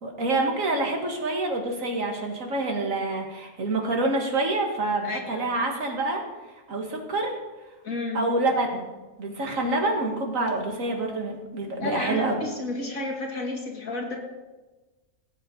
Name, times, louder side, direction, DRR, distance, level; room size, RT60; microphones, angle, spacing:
voice 1, 0.0-6.2 6.7-7.3 8.1-8.9 9.2-12.3, right 2 dB, 75° right, 2 dB, 2.1 m, -27 dB
voice 2, 5.0-5.5 7.8-8.2 11.8-14.2, left 2 dB, 85° left, -2 dB, 2.5 m, -31 dB
17.5 x 7.6 x 4.0 m, 1.2 s
omnidirectional pair, 1.4 m